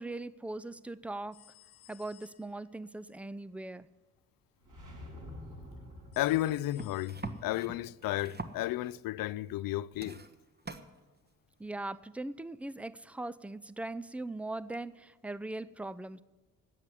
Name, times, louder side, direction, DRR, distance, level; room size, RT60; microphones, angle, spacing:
voice 1, 0.0-1.4 1.9-3.9 11.6-16.2, right 2 dB, 5° right, 0.5 m, -40 dB
sound 1, 1.3-2.8 6.1-7.6, left 13 dB, 85° left, 1.4 m, -59 dB
sound 2, 4.6-6.8, left 1 dB, 50° right, 6.1 m, -48 dB
voice 2, 6.2-10.2, left 15 dB, 60° left, 0.5 m, -33 dB
sound 3, 6.8-9.0 9.5-9.7 9.9-10.9 11.9-12.0, right 3 dB, 25° right, 1.3 m, -43 dB
12.5 x 8.3 x 9.8 m
hypercardioid pair, 45°, 39 cm